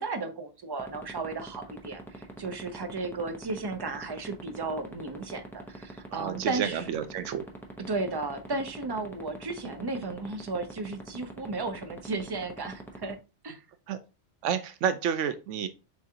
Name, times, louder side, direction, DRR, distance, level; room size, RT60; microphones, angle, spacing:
voice 1, 0.0-6.8 7.9-13.2 13.4-13.6, right 3 dB, 40° right, 8 dB, 0.3 m, -34 dB
sound 1, 0.8-13.1, right 1 dB, ahead, 0.6 m, -41 dB
voice 2, 6.1-7.4 13.9-14.0 14.4-15.7, right 8 dB, 85° right, 11 dB, 0.9 m, -30 dB
7.0 x 2.5 x 2.8 m, 0.31 s
omnidirectional pair, 1.2 m